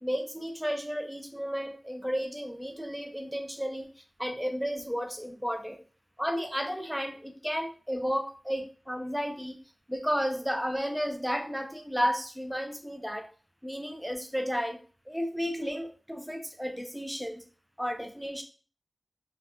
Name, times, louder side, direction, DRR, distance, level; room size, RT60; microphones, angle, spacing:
voice 1, 0.0-3.9 4.2-5.8 6.2-9.6 9.9-13.3 13.6-17.4 17.8-18.4, equal, ahead, 5 dB, 0.4 m, -33 dB
2.6 x 2.4 x 2.4 m, 0.38 s
wide cardioid pair, 75°, 0 cm